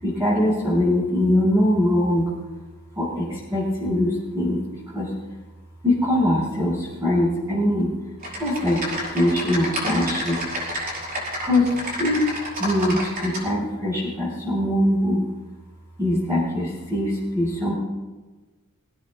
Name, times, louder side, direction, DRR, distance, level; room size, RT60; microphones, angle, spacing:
voice 1, 0.0-2.3 2.9-5.1 5.8-7.9 8.4-10.4 11.4-15.2 16.0-17.7, left 1 dB, 15° right, -8 dB, 5.7 m, -22 dB
Typing, 8.2-13.4, equal, 40° right, 5.4 m, -30 dB
23.0 x 17.5 x 2.5 m, 1.2 s
head